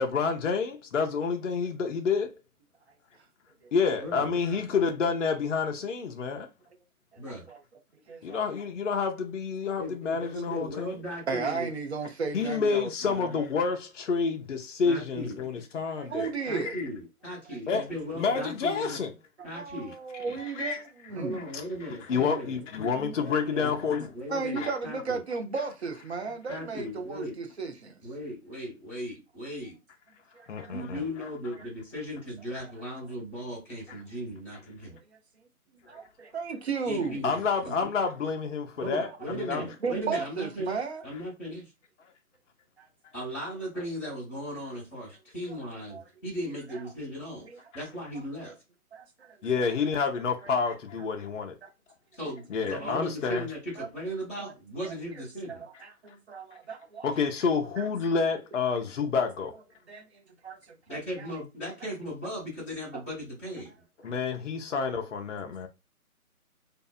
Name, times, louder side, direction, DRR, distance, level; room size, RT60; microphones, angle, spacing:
voice 1, 0.0-2.3 3.7-6.5 8.2-10.9 12.3-16.9 17.7-17.9 18.2-19.1 20.3-20.8 21.3-24.1 24.6-24.7 26.5-26.6 30.5-31.0 37.2-39.7 49.4-51.5 52.5-53.5 57.0-59.5 64.0-65.7, left 5 dB, 55° left, 0.5 m, -29 dB
voice 2, 4.0-4.3 7.2-7.5 9.8-11.7 14.8-15.4 16.4-19.0 19.4-19.9 21.1-22.6 23.2-23.7 24.1-25.2 26.5-27.4 28.0-29.8 30.7-35.0 36.8-37.9 38.8-40.8 41.0-41.7 43.1-47.5 47.7-48.5 52.1-55.6 60.9-63.7, equal, 10° left, 1.0 m, -37 dB
voice 3, 7.1-7.6 8.1-8.4 10.2-10.3 11.3-13.4 16.0-16.8 19.5-21.5 23.0-23.2 24.3-28.0 30.3-30.7 35.9-37.3 39.0-39.2 39.8-41.0 42.8-42.9 45.5-45.6 45.9-46.0 46.7-46.8 47.4-47.6 48.9-49.4 50.4-50.5 52.8-52.9 53.8-53.9 54.4-54.5 55.5-57.1 58.7-58.8 59.9-61.3 62.9-63.0, right 4 dB, 50° right, 0.6 m, -35 dB
2.6 x 2.1 x 2.3 m
hypercardioid pair, 160°, 44 cm